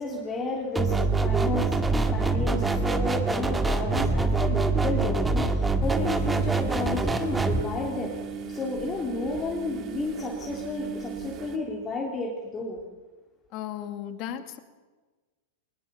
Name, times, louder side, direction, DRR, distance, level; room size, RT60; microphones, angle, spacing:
voice 1, 0.0-12.8, left 3 dB, 20° left, -1 dB, 3.5 m, -32 dB
sound 1, 0.7-7.6, right 3 dB, 10° right, 1.8 m, -25 dB
sound 2, 5.8-11.6, right 5 dB, 40° right, 2.6 m, -37 dB
voice 2, 13.5-14.6, left 10 dB, 45° left, 9 dB, 2.2 m, -35 dB
21.0 x 20.0 x 7.0 m, 1.3 s
hypercardioid pair, 120°, 0 cm